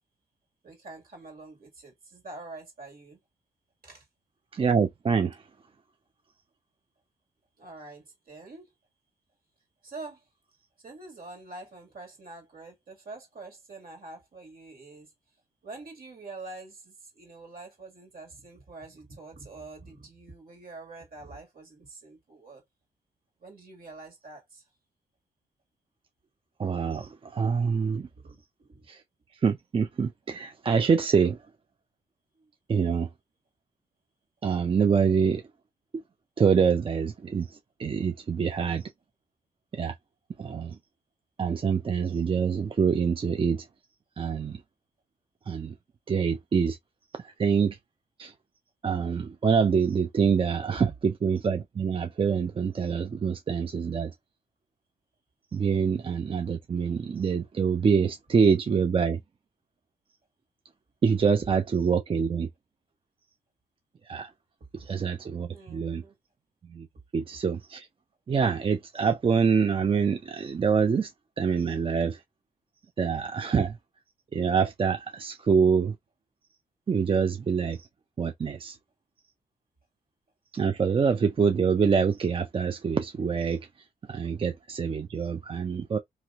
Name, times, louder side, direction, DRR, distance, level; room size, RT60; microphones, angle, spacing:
voice 1, 0.6-3.2 3.8-4.1 7.6-8.7 9.8-10.3 10.8-15.4 15.6-22.6 23.4-24.7 28.2-28.9 32.3-32.5 64.6-64.9 65.5-66.2, right 3 dB, 55° right, 1.9 m, -46 dB
voice 2, 4.5-5.4 26.6-28.1 28.9-29.0 29.4-31.4 32.7-33.1 34.4-35.4 36.4-38.9 39.7-39.9 40.4-40.8 41.4-43.7 44.2-44.6 45.5-45.7 46.1-46.8 47.2-47.8 48.2-48.3 48.8-54.1 55.5-59.2 61.0-62.5 64.1-64.3 64.7-66.0 66.7-66.9 67.1-67.9 68.3-71.1 71.4-72.2 73.0-73.8 74.3-75.9 76.9-77.9 78.2-78.8 80.5-83.7 84.1-86.0, right 6 dB, 30° right, 0.4 m, -25 dB
3.0 x 2.9 x 2.4 m
supercardioid pair, 55°, 18 cm